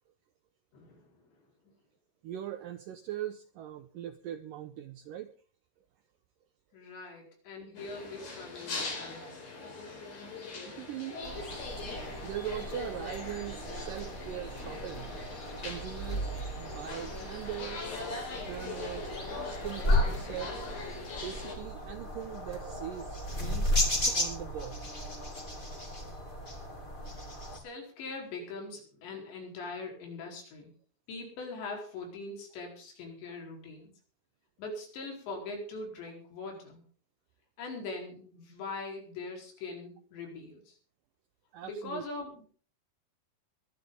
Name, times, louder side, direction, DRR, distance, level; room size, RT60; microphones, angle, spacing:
voice 1, 0.7-1.3 6.7-9.5 27.5-30.7 31.1-33.9 34.6-36.8 37.6-40.8 41.6-42.5, left 3 dB, 90° left, 2 dB, 6.6 m, -42 dB
voice 2, 2.2-5.3 7.0-7.2 10.6-11.2 11.9-15.1 15.5-16.3 16.6-17.9 18.4-19.1 19.5-20.7 21.2-24.9 41.5-42.0, right 11 dB, 85° right, 9 dB, 1.9 m, -41 dB
sound 1, 7.8-21.6, left 3 dB, 55° left, 6.5 m, -41 dB
sound 2, 11.2-27.6, left 1 dB, 15° left, 2.2 m, -35 dB
22.0 x 11.5 x 3.9 m, 0.43 s
omnidirectional pair, 4.9 m